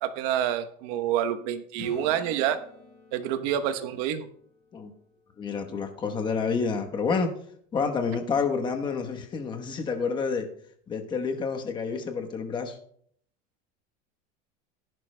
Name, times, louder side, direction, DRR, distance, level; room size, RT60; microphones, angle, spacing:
voice 1, 0.0-2.6 3.1-4.3, right 10 dB, 65° right, 8 dB, 1.0 m, -27 dB
Acoustic guitar / Strum, 1.8-5.5 10.4-10.5, left 4 dB, 45° left, 4.4 m, -49 dB
voice 2, 5.4-7.3 7.7-10.5 10.9-12.8, left 5 dB, 20° left, 5 dB, 1.1 m, -29 dB
17.5 x 11.0 x 2.2 m, 0.65 s
supercardioid pair, 155°, 21 cm